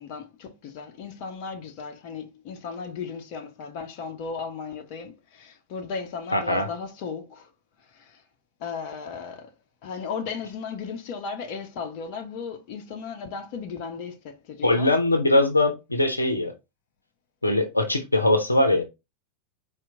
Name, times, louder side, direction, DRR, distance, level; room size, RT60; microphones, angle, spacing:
voice 1, 0.0-7.5 7.9-8.2 8.6-9.5 9.8-14.9, left 5 dB, 45° left, 0.7 m, -36 dB
voice 2, 6.3-6.7 14.6-16.5 17.4-18.8, left 2 dB, 80° left, 0.7 m, -21 dB
4.4 x 2.5 x 3.7 m
figure-of-eight pair, 90°, 0 cm